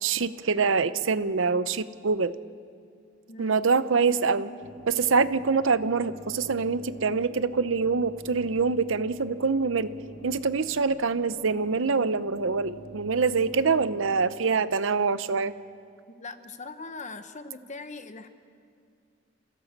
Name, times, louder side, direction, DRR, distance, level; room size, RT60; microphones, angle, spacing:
voice 1, 0.0-2.3 3.4-4.5 4.9-9.9 10.2-15.5, right 4 dB, 70° right, 14 dB, 0.7 m, -25 dB
voice 2, 3.3-3.6 16.2-18.3, left 3 dB, 35° left, 9 dB, 1.1 m, -40 dB
sound 1, 4.6-14.2, right 2 dB, 85° right, 1.6 m, -47 dB
28.5 x 16.0 x 7.3 m, 2.4 s
head